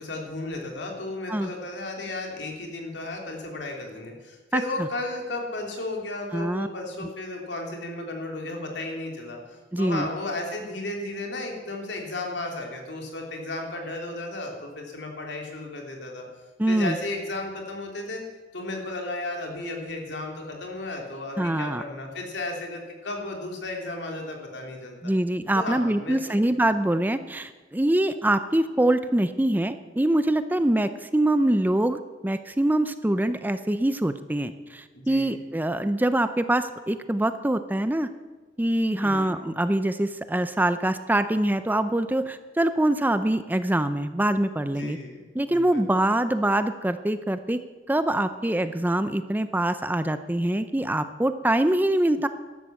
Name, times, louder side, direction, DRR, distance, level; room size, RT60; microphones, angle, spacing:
voice 1, 0.0-9.4 9.8-16.3 16.7-18.2 18.5-25.1 25.5-26.5 34.9-35.4 39.0-39.3 44.7-45.8, left 2 dB, 70° left, 1 dB, 3.2 m, -34 dB
voice 2, 6.3-6.7 9.7-10.1 16.6-17.0 21.4-21.8 25.0-38.1 38.6-45.0 45.3-47.6 47.9-52.3, right 1 dB, 10° right, 11 dB, 0.5 m, -24 dB
13.0 x 11.5 x 7.5 m, 1.3 s
head